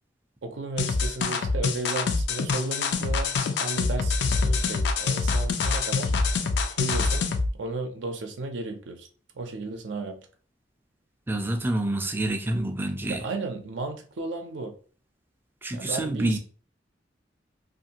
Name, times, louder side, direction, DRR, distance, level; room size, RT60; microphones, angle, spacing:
voice 1, 0.4-3.3 3.6-6.1 6.7-9.1 9.4-10.2 13.1-14.7 15.7-16.4, right 3 dB, 85° right, 0.5 m, -34 dB
sound 1, 0.8-7.5, left 4 dB, 65° left, 0.4 m, -25 dB
voice 2, 11.3-13.2 15.6-16.4, right 1 dB, 10° right, 0.3 m, -27 dB
2.6 x 2.5 x 2.8 m
head